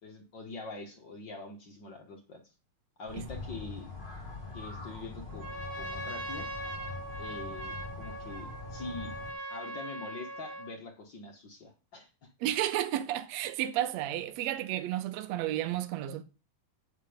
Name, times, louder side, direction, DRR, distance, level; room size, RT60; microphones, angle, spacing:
voice 1, 0.0-2.4 3.0-3.9 4.5-6.5 7.2-9.1 9.5-12.1, left 3 dB, 50° left, 1.4 m, -44 dB
sound 1, 3.1-9.3, left 3 dB, 20° left, 2.8 m, -43 dB
Trumpet, 5.3-10.8, right 1 dB, 45° right, 5.6 m, -41 dB
voice 2, 12.4-16.2, right 13 dB, 70° right, 1.8 m, -32 dB
7.5 x 7.4 x 5.0 m
omnidirectional pair, 3.8 m